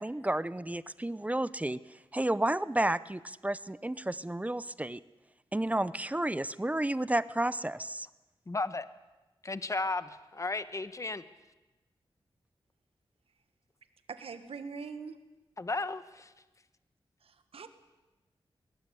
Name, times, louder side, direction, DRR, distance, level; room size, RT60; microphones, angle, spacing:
voice 1, 0.0-1.8 2.1-5.0 5.5-8.1, right 1 dB, 15° right, 16 dB, 0.7 m, -31 dB
voice 2, 8.5-8.9 9.4-10.0 10.3-11.2 15.6-16.3, left 3 dB, 35° left, 12 dB, 1.2 m, -34 dB
voice 3, 14.1-15.2 17.2-17.7, right 5 dB, 85° right, 9 dB, 1.7 m, -42 dB
21.5 x 18.0 x 8.5 m, 1.1 s
cardioid pair, 70°, 10 cm